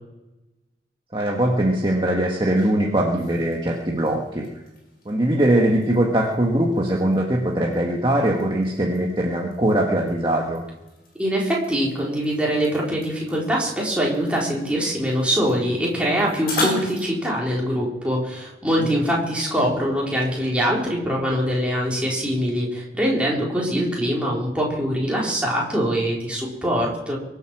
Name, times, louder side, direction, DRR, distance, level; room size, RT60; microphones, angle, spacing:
voice 1, 1.1-4.5 5.0-10.6 18.8-18.9, right 1 dB, 25° right, -1 dB, 1.5 m, -21 dB
sound 1, 2.2-17.1, left 1 dB, 50° left, 6.2 m, -38 dB
voice 2, 11.1-27.2, equal, 5° right, -4 dB, 4.1 m, -23 dB
23.0 x 8.2 x 6.1 m, 1.0 s
head